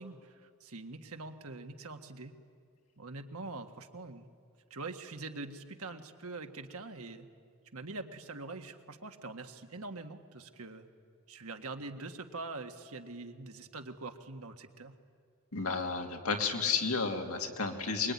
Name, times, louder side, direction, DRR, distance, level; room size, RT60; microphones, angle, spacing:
voice 1, 0.0-2.3 3.0-4.2 4.7-7.3 7.7-10.9 11.3-14.9, right 3 dB, 70° right, 5 dB, 1.7 m, -44 dB
voice 2, 15.5-18.1, left 5 dB, 70° left, 2 dB, 2.8 m, -32 dB
24.0 x 22.0 x 9.8 m, 2.1 s
head